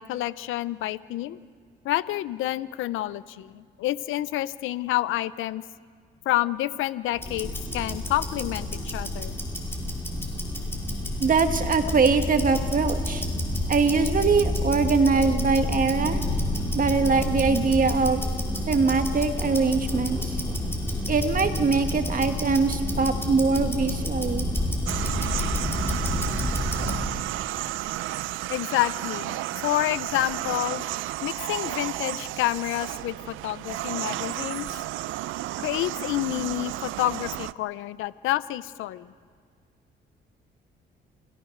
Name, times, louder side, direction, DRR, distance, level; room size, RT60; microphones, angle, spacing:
voice 1, 0.0-1.4 1.8-5.6 6.3-9.3 11.8-11.9 28.5-29.4 29.6-30.8 31.2-34.7 35.6-39.1, left 15 dB, 90° left, 17 dB, 0.6 m, -28 dB
Tick-tock, 7.1-27.1, left 1 dB, 10° left, 5.6 m, -29 dB
voice 2, 11.2-13.2 13.7-16.2 16.7-18.2 18.7-20.3 21.1-24.5, right 4 dB, 45° right, 7 dB, 1.7 m, -23 dB
sound 1, 24.9-37.5, right 15 dB, 85° right, 0.5 m, -32 dB
29.0 x 16.5 x 6.6 m, 2.1 s
cardioid pair, 90°, 20 cm